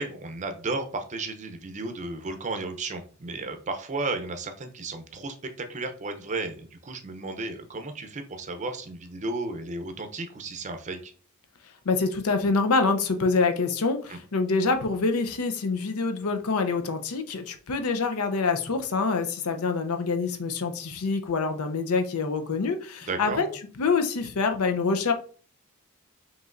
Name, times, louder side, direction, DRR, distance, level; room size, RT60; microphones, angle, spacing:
voice 1, 0.0-11.1 14.1-14.2 23.0-23.5, right 3 dB, 35° right, 6 dB, 0.5 m, -34 dB
voice 2, 11.9-23.5 23.8-25.1, left 4 dB, 90° left, 7 dB, 0.6 m, -26 dB
5.2 x 3.0 x 2.5 m, 0.43 s
head